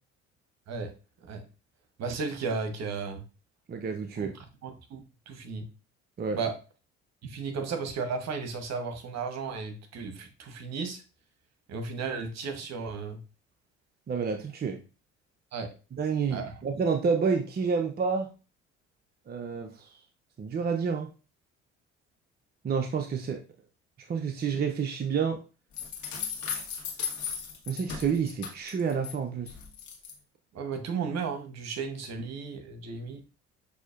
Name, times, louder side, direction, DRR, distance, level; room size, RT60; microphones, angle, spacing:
voice 1, 2.0-3.2 4.2-5.0 5.3-5.7 6.3-6.5 7.2-11.0 11.7-13.2 15.5-15.7 16.3-16.6 30.5-33.2, right 5 dB, 50° right, 6 dB, 1.1 m, -34 dB
voice 2, 3.7-4.3 6.2-6.4 14.1-14.8 16.0-18.3 19.3-19.7 20.4-21.1 22.6-23.4 24.1-25.4 27.7-29.5, right 5 dB, 30° right, 4 dB, 0.6 m, -29 dB
sound 1, 25.7-29.1 29.5-30.1, left 7 dB, 60° left, 1.4 m, -36 dB
6.2 x 2.8 x 2.5 m, 0.33 s
hypercardioid pair, 55°, 33 cm